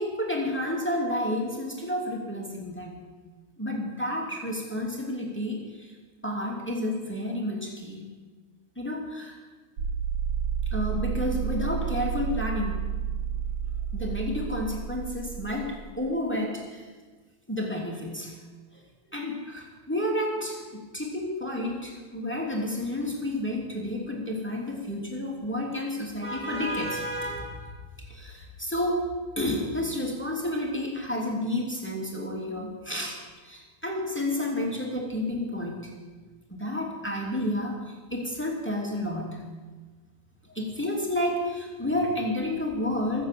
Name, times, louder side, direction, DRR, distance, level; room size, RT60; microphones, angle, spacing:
voice 1, 0.0-3.0 3.6-5.9 6.2-8.1 8.8-9.4 10.7-12.8 13.9-16.9 17.5-18.4 18.7-18.8 19.1-29.1 29.4-35.9 36.5-39.4 40.4-43.2, left 1 dB, 5° left, -1 dB, 2.6 m, -31 dB
sound 1, 9.8-15.9, right 7 dB, 80° right, 2.3 m, -31 dB
23.0 x 7.7 x 7.6 m, 1.3 s
omnidirectional pair, 2.4 m